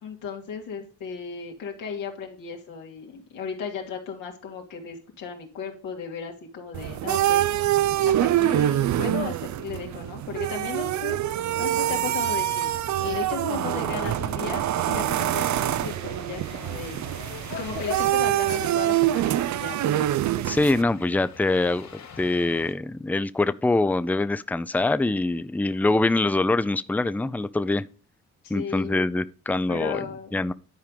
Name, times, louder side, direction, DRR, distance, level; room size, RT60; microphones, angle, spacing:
voice 1, 0.0-7.5 8.1-12.7 13.0-17.0 17.6-19.9 28.4-29.0 29.7-30.4, left 6 dB, 85° left, 2.3 m, -35 dB
sound 1, 6.7-20.8, right 13 dB, 60° right, 0.5 m, -25 dB
sound 2, 12.5-18.0, left 8 dB, 40° left, 0.8 m, -41 dB
sound 3, 15.2-22.7, left 5 dB, 55° left, 2.4 m, -49 dB
voice 2, 20.5-27.9 28.5-30.0 30.3-30.5, left 2 dB, 5° left, 0.5 m, -24 dB
10.5 x 4.8 x 5.2 m
supercardioid pair, 60°, 32 cm